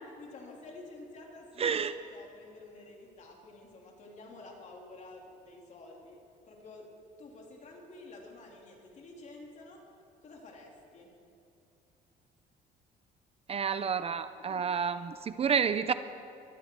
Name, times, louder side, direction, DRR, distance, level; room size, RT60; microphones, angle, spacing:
voice 1, 0.1-1.8 2.1-6.9 7.2-9.9 10.2-11.1 14.4-14.6, left 2 dB, 45° left, 0 dB, 3.3 m, -50 dB
voice 2, 1.6-1.9 13.5-15.9, right 6 dB, 35° right, 12 dB, 0.6 m, -29 dB
21.0 x 14.0 x 4.7 m, 2.6 s
cardioid pair, 110°, 17 cm